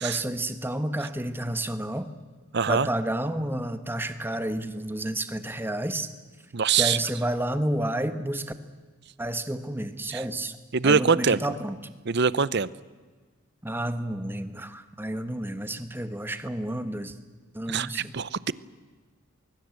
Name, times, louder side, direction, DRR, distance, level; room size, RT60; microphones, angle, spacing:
voice 1, 0.0-2.1 2.7-6.1 6.8-8.5 9.2-10.5 10.8-11.8 13.6-17.1 17.5-18.1, right 1 dB, 10° right, 10 dB, 1.2 m, -30 dB
voice 2, 2.5-2.9 6.5-7.0 10.1-10.2 10.7-11.4 12.1-12.7 17.7-18.5, right 6 dB, 50° right, 18 dB, 0.7 m, -23 dB
24.0 x 22.5 x 8.3 m, 1.4 s
head